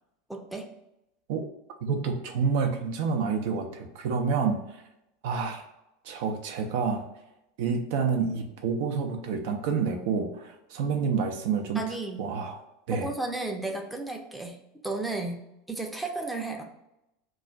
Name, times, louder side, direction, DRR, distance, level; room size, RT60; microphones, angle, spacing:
voice 1, 0.3-0.7 11.7-12.3 12.9-14.6 14.8-16.6, right 2 dB, 5° right, 1 dB, 0.5 m, -33 dB
voice 2, 1.8-4.6 5.2-5.6 6.0-7.0 7.6-11.8 12.2-12.6 12.9-13.1, right 5 dB, 60° right, 4 dB, 0.4 m, -28 dB
2.4 x 2.3 x 3.9 m, 0.86 s
figure-of-eight pair, 80°, 0 cm